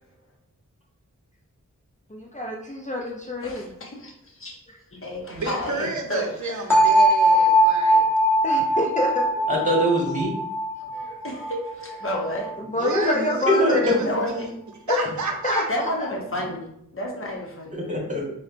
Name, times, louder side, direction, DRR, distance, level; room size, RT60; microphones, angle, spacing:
voice 1, 2.1-3.7 8.4-9.5 12.6-13.8 14.9-15.1 15.4-16.1, left 2 dB, 25° left, -2 dB, 0.4 m, -27 dB
voice 2, 3.4-4.5 5.0-6.6 7.3-7.5 10.9-12.5 14.0-14.5 15.7-17.8, left 1 dB, 40° left, -1 dB, 0.8 m, -31 dB
voice 3, 5.3-8.1 10.8-11.1 12.7-14.5 14.9-15.7, right 3 dB, 60° right, 2 dB, 0.6 m, -31 dB
sound 1, 6.7-12.5, right 1 dB, 5° left, 1.1 m, -20 dB
voice 4, 9.5-10.3 13.1-13.7 14.0-14.1 17.7-18.2, equal, 25° right, -3 dB, 1.3 m, -23 dB
4.1 x 2.1 x 2.5 m, 0.74 s
wide cardioid pair, 55°, 32 cm